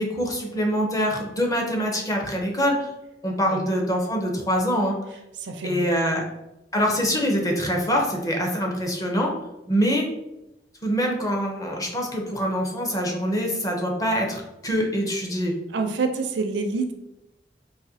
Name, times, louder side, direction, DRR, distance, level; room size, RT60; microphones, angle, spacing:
voice 1, 0.0-2.9 3.2-5.0 5.6-6.2 6.7-9.3 9.7-10.1 10.8-15.5, equal, 20° left, 1 dB, 0.6 m, -24 dB
voice 2, 5.4-5.9 15.7-16.9, right 4 dB, 80° right, 5 dB, 0.5 m, -27 dB
4.0 x 2.5 x 2.7 m, 0.93 s
head